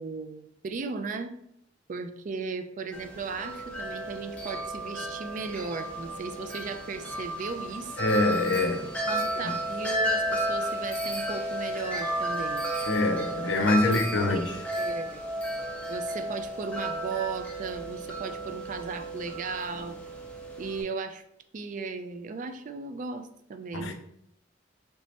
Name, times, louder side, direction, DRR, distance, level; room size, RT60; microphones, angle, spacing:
voice 1, 0.0-1.3 1.9-7.9 9.1-12.7 13.6-15.2 15.9-20.0 20.6-21.2 21.5-23.9, right 4 dB, 45° right, 0.3 m, -36 dB
Wind chime, 2.9-20.8, right 1 dB, 5° left, 0.6 m, -33 dB
voice 2, 8.0-8.9 9.4-9.5 12.9-14.6 23.7-23.9, left 2 dB, 85° left, 0.5 m, -25 dB
3.2 x 3.1 x 2.8 m
head